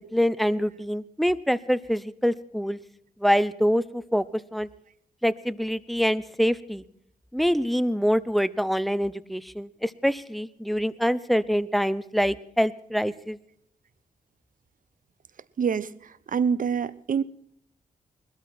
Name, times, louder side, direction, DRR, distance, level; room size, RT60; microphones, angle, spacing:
voice 1, 0.1-2.8 3.2-4.3 4.5-4.7 5.2-6.8 7.3-13.4, equal, ahead, 17 dB, 0.8 m, -25 dB
voice 2, 15.6-17.2, right 6 dB, 60° right, 18 dB, 0.8 m, -26 dB
20.5 x 13.0 x 4.4 m, 0.71 s
cardioid pair, 70°, 15 cm